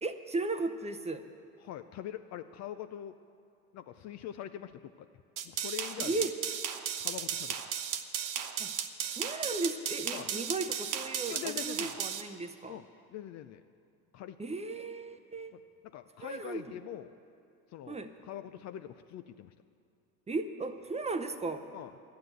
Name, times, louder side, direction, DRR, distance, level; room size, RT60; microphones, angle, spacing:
voice 1, 0.0-1.2 6.0-6.3 8.6-8.7 9.1-12.8 14.4-15.5 16.2-16.6 17.9-18.1 20.3-21.6, right 3 dB, 15° right, 8 dB, 0.7 m, -36 dB
voice 2, 1.6-3.1 3.7-5.1 5.4-6.3 7.0-7.6 10.1-10.3 11.3-12.0 12.7-12.8 13.1-13.6 14.1-14.4 15.5-17.2 17.7-19.5 21.7-21.9, left 11 dB, 40° left, 10 dB, 0.5 m, -43 dB
sound 1, 5.4-12.2, right 9 dB, 45° right, 0.9 m, -35 dB
12.0 x 9.6 x 7.9 m, 2.5 s
hypercardioid pair, 85°, 44 cm